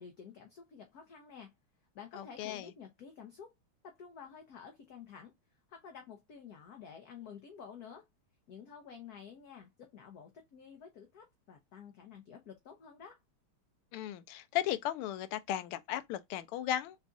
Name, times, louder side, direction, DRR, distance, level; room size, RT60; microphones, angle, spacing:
voice 1, 0.0-1.5 1.9-3.5 3.8-5.3 5.7-8.1 8.5-13.2, left 7 dB, 60° left, 1.0 m, -51 dB
voice 2, 2.1-2.7 13.9-17.0, left 12 dB, 85° left, 1.5 m, -36 dB
4.0 x 3.5 x 2.5 m
omnidirectional pair, 2.4 m